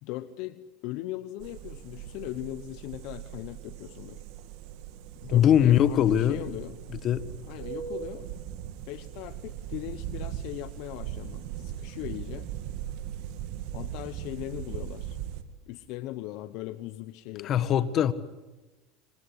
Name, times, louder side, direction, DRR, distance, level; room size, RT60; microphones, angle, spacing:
voice 1, 0.0-4.2 5.2-6.8 7.5-8.3 8.9-12.5 13.7-15.2 15.7-17.6, left 16 dB, 65° left, 1.0 m, -39 dB
sound 1, 1.4-15.4, right 10 dB, 65° right, 2.2 m, -39 dB
voice 2, 5.3-6.4 7.0-7.3 17.4-18.1, left 10 dB, 45° left, 1.5 m, -21 dB
27.0 x 24.5 x 8.3 m
supercardioid pair, 100°, 0 cm